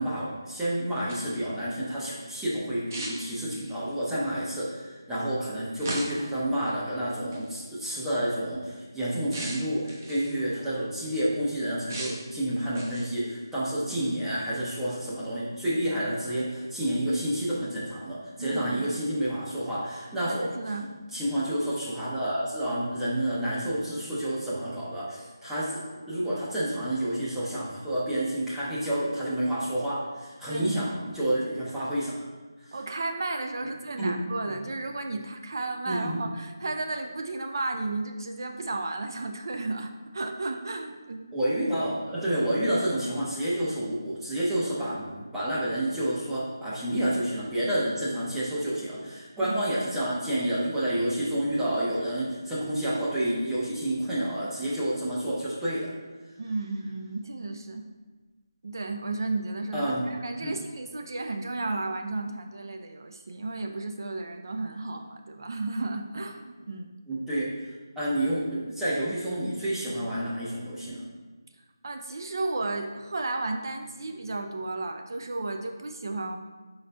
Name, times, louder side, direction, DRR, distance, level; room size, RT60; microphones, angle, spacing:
voice 1, 0.0-20.5 21.1-32.1 32.6-32.8 34.0-34.2 34.5-34.6 35.9-36.3 41.3-55.9 59.7-60.0 60.4-60.6 67.1-71.0, right 1 dB, 5° right, -11 dB, 0.6 m, -29 dB
sound 1, 0.9-1.4 2.9-3.8 5.8-6.4 7.3-7.5 9.3-10.4 11.9-12.3 12.7-13.2, right 1 dB, 40° right, 0.8 m, -37 dB
voice 2, 18.4-19.0 20.3-20.9 30.5-30.8 32.7-41.3 49.4-49.6 56.4-57.9 58.6-66.9 71.8-76.4, right 2 dB, 55° right, 4 dB, 0.5 m, -33 dB
4.9 x 4.0 x 2.2 m, 1.3 s
figure-of-eight pair, 160°, 2 cm